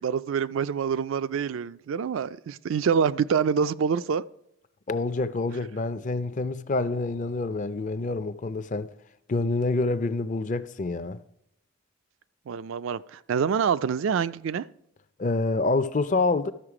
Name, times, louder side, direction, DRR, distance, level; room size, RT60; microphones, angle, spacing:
voice 1, 0.0-4.2 12.5-14.6, right 6 dB, 65° right, 0.3 m, -26 dB
voice 2, 4.9-8.9 9.3-11.2 15.2-16.5, left 3 dB, 35° left, 0.4 m, -27 dB
12.5 x 6.4 x 4.9 m
head